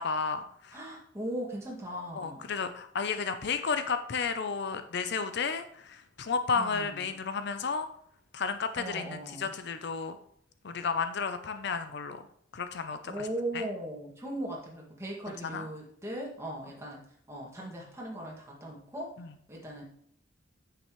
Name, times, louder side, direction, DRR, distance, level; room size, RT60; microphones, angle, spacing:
voice 1, 0.0-0.8 2.2-7.9 8.3-10.2 10.6-12.3 12.5-13.3 13.5-13.7 15.3-15.7 19.2-19.3, left 5 dB, 60° left, 9 dB, 0.6 m, -32 dB
voice 2, 0.7-2.4 6.5-7.0 8.8-9.5 13.0-17.0 17.3-19.1 19.5-19.8, right 1 dB, 15° right, -3 dB, 2.0 m, -38 dB
9.1 x 6.8 x 3.1 m, 0.67 s
head